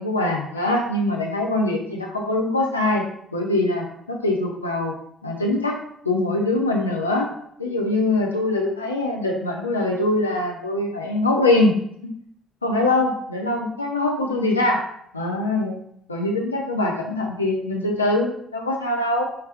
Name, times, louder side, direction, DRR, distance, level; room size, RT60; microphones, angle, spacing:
voice 1, 0.0-3.0 3.3-4.9 5.2-5.8 6.0-7.3 7.6-12.1 12.6-14.8 15.1-15.8 16.1-19.2, left 2 dB, 90° left, 0 dB, 0.4 m, -23 dB
4.9 x 3.1 x 2.9 m, 0.70 s
figure-of-eight pair, 45°, 0 cm